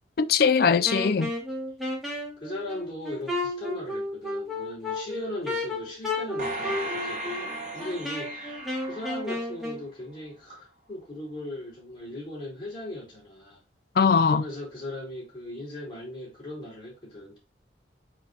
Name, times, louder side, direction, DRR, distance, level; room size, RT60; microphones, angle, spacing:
voice 1, 0.2-1.3 14.0-14.4, left 6 dB, 55° left, 0.4 m, -21 dB
Wind instrument woodwind instrument, 0.8-9.8, left 2 dB, ahead, 1.9 m, -33 dB
voice 2, 2.4-8.6 8.9-13.6 14.3-17.4, left 1 dB, 25° left, 4.2 m, -38 dB
sound 1, 6.4-9.8 10.3-10.4, right 1 dB, 45° right, 1.6 m, -36 dB
7.7 x 4.8 x 2.8 m
head